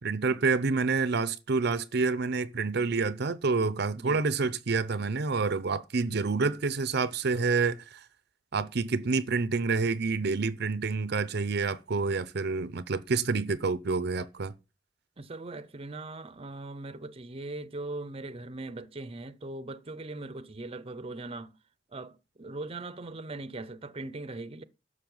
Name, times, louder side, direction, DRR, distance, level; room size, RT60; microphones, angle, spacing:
voice 1, 0.0-8.1 8.5-14.5, right 4 dB, 60° right, 0.7 m, -28 dB
voice 2, 4.0-4.3 15.2-21.5 21.9-24.6, right 2 dB, 30° right, 0.7 m, -40 dB
12.0 x 6.7 x 5.5 m
head